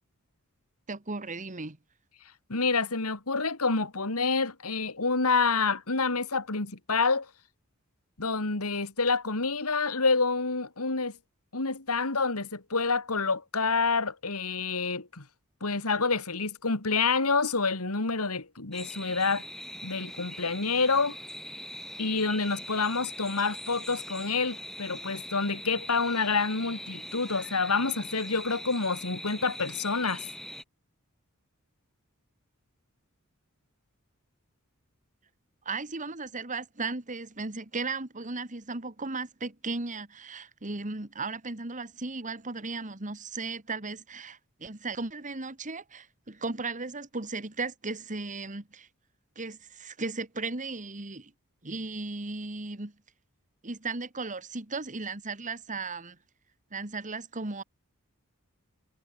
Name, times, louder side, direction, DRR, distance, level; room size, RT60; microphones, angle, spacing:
voice 1, 0.9-1.8 35.7-48.9 49.4-51.3 51.6-52.9 53.6-56.2 56.7-57.6, right 3 dB, 35° right, 2.0 m, -36 dB
voice 2, 2.5-7.3 8.2-11.1 11.5-15.2 15.6-19.4 19.8-21.2 22.0-30.2, left 4 dB, 85° left, 2.6 m, -28 dB
sound 1, 18.7-30.6, equal, ahead, 3.2 m, -41 dB
head